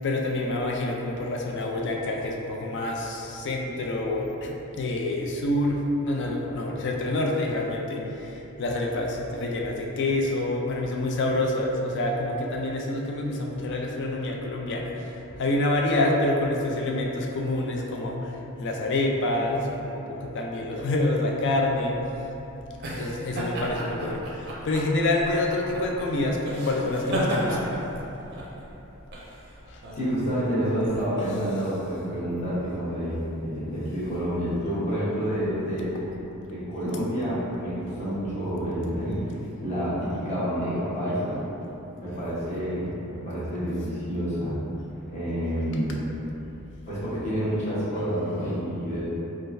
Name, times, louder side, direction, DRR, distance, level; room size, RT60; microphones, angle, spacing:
voice 1, 0.0-15.1 15.4-22.0 22.9-27.8 29.7-29.8, left 2 dB, 55° left, 0 dB, 0.4 m, -27 dB
Laughter casual (or fake), 21.8-31.0, equal, 45° right, 0.5 m, -33 dB
voice 2, 30.0-35.9 36.5-39.3 39.6-41.4 42.0-44.6 45.1-46.0 46.9-49.0, equal, 30° left, -11 dB, 1.0 m, -28 dB
3.7 x 2.4 x 2.6 m, 3.0 s
head